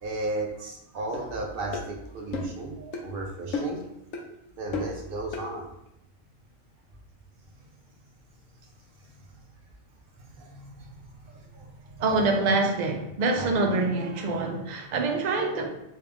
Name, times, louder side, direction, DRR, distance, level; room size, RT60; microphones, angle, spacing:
voice 1, 0.0-3.8 4.6-5.7 9.0-9.1 10.1-10.9 11.2-11.7 13.4-13.5, right 2 dB, 55° right, 1 dB, 0.7 m, -35 dB
sound 1, 1.1-1.3 1.7-1.9 2.3-2.6 2.9-3.1 3.5-3.8 4.1-4.3 4.7-5.0 5.3-5.5, left 3 dB, 85° left, 1.0 m, -32 dB
voice 2, 12.0-15.7, right 3 dB, 85° right, 2 dB, 0.3 m, -25 dB
3.2 x 2.3 x 3.4 m, 0.83 s
omnidirectional pair, 1.3 m